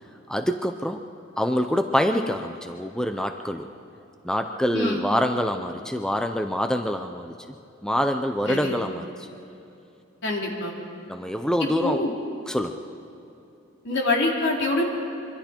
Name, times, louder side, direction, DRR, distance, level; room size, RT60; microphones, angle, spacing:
voice 1, 0.3-1.0 1.4-3.7 4.2-7.3 7.8-9.3 11.1-12.0 12.5-12.8, equal, 5° left, 6 dB, 0.6 m, -25 dB
voice 2, 4.7-5.0 8.5-8.8 10.2-10.7 11.6-12.1 13.8-14.8, left 2 dB, 60° left, -1 dB, 3.6 m, -25 dB
25.5 x 24.0 x 4.5 m, 2.8 s
head